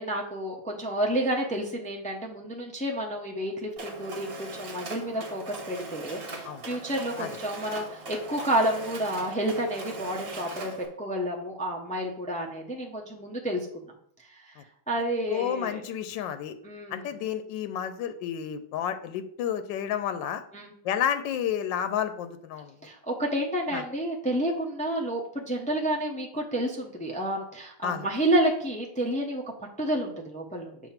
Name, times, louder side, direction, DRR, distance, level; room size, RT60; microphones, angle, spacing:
voice 1, 0.0-10.7 11.0-13.9 14.3-14.6 14.9-15.8 16.6-17.1 20.5-20.7 22.8-30.8, right 1 dB, 10° left, -1 dB, 0.4 m, -30 dB
Mechanisms, 3.8-10.9, right 2 dB, 40° right, 1.1 m, -40 dB
voice 2, 15.3-16.5 16.9-20.4 20.8-22.7 23.7-23.8 27.8-28.1, left 9 dB, 85° left, 11 dB, 1.3 m, -31 dB
7.1 x 2.9 x 5.7 m, 0.66 s
omnidirectional pair, 1.9 m